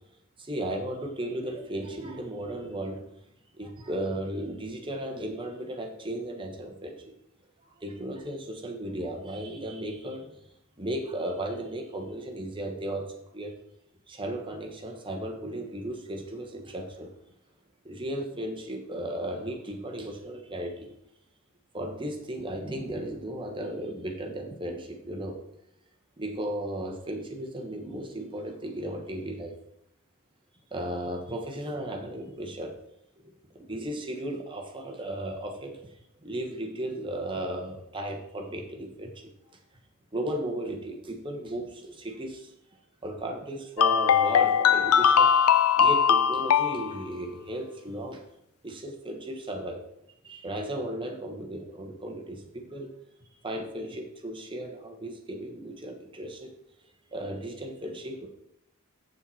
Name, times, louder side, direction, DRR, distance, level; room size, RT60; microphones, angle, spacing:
voice 1, 0.4-3.1 3.6-6.9 7.8-10.3 10.8-13.1 13.3-13.6 14.1-17.1 17.8-20.9 21.7-25.4 26.2-29.6 30.7-32.8 33.2-35.8 36.2-39.3 40.1-42.5 43.0-45.3 45.8-48.2 48.6-49.8 50.2-52.9 53.4-56.5 57.1-58.3, right 1 dB, 20° right, 2 dB, 1.2 m, -35 dB
sound 1, 43.8-47.0, left 7 dB, 70° left, 0.4 m, -21 dB
7.8 x 6.8 x 4.2 m, 0.77 s
head